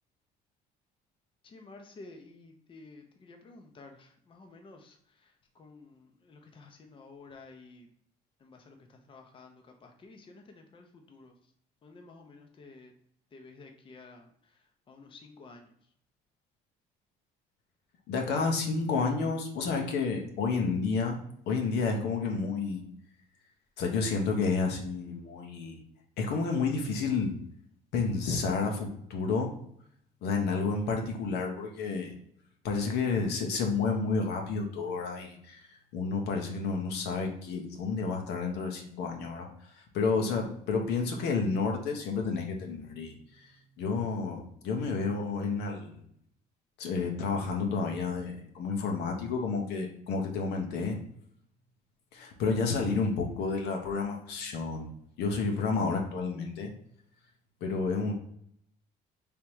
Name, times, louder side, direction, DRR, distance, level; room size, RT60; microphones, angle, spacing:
voice 1, 1.4-7.9 8.4-11.3 11.8-12.9 13.3-15.8, left 3 dB, 30° left, 4 dB, 0.6 m, -52 dB
voice 2, 18.1-21.2 21.5-22.8 23.8-25.8 26.2-27.3 27.9-29.5 30.2-32.1 32.6-46.0 46.8-51.0 52.1-54.9 55.2-56.7 57.6-58.1, left 4 dB, 80° left, 2 dB, 0.9 m, -30 dB
3.5 x 2.9 x 4.5 m, 0.68 s
cardioid pair, 110°, 17 cm